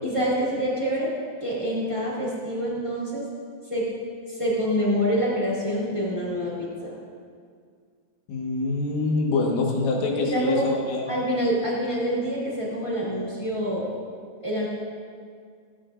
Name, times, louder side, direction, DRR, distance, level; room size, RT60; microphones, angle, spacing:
voice 1, 0.0-1.1 1.4-3.3 3.7-3.9 4.3-7.0 10.3-10.7 11.1-13.9 14.4-14.7, equal, 10° left, -6 dB, 1.9 m, -26 dB
voice 2, 8.3-11.1, left 3 dB, 75° left, -1 dB, 3.7 m, -25 dB
16.5 x 15.5 x 2.6 m, 2.1 s
omnidirectional pair, 5.5 m